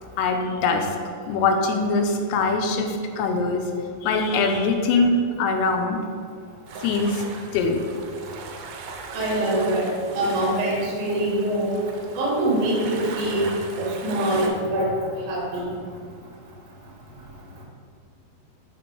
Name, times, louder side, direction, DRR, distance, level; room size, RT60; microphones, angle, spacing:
voice 1, 0.2-1.0 1.3-3.6 4.0-6.0 6.8-7.2 7.5-7.8, left 3 dB, 90° left, 4 dB, 2.6 m, -22 dB
sound 1, 6.7-14.5, right 4 dB, 80° right, 2.3 m, -38 dB
voice 2, 9.1-11.8 12.2-13.5 13.8-14.9 15.3-15.8, right 1 dB, 65° right, -5 dB, 2.2 m, -24 dB
8.3 x 3.0 x 4.5 m, 2.2 s
omnidirectional pair, 4.6 m